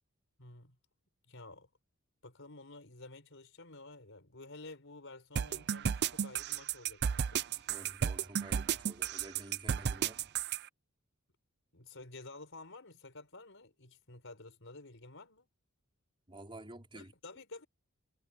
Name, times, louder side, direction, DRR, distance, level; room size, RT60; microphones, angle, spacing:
voice 1, 0.4-0.8 1.3-1.7 2.2-7.7 11.7-15.5 16.9-17.7, left 2 dB, 60° left, 5.0 m, -51 dB
sound 1, 5.4-10.6, right 8 dB, 50° right, 0.5 m, -33 dB
voice 2, 7.7-10.3 16.3-17.1, right 1 dB, 25° right, 4.8 m, -50 dB
head